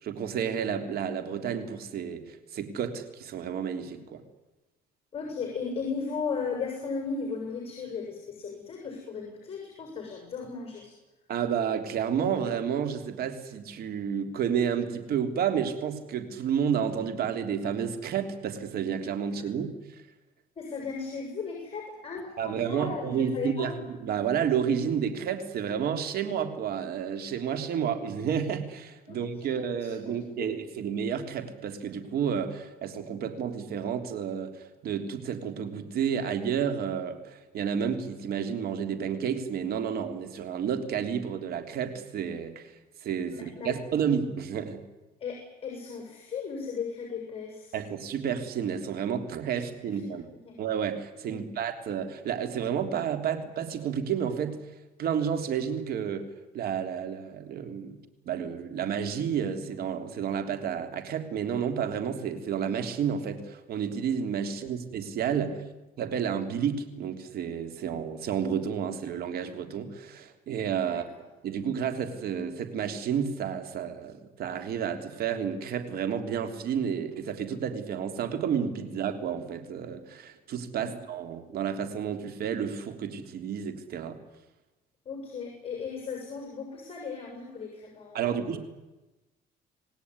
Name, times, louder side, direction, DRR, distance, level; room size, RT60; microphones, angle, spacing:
voice 1, 0.0-4.2 11.3-20.0 22.4-23.7 24.0-42.7 43.0-44.8 47.7-50.2 50.6-54.6 55.0-56.3 56.5-58.0 58.3-65.6 66.0-71.1 71.4-84.2 88.1-88.6, right 7 dB, 65° right, 8 dB, 3.6 m, -31 dB
voice 2, 5.1-10.9 20.6-23.8 29.1-30.5 43.3-43.8 45.2-47.8 50.0-50.6 51.3-51.4 64.6-64.7 70.8-71.2 80.8-80.9 85.1-88.6, left 5 dB, 35° left, 2 dB, 7.1 m, -36 dB
27.5 x 18.0 x 9.9 m, 1.1 s
cardioid pair, 110°, 17 cm